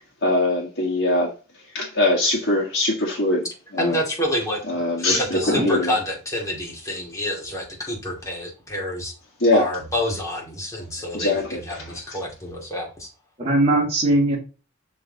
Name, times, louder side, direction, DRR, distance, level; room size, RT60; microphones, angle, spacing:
voice 1, 0.2-1.3 1.7-3.5 3.7-4.0 4.7-6.0 9.4-9.7 11.1-12.2, left 2 dB, 55° left, 1.6 m, -22 dB
voice 2, 3.8-5.1 5.3-9.1 9.5-13.1, left 1 dB, 15° left, 2.3 m, -28 dB
voice 3, 5.3-5.8 13.4-14.4, right 1 dB, 30° right, 2.3 m, -20 dB
6.4 x 4.3 x 3.9 m
head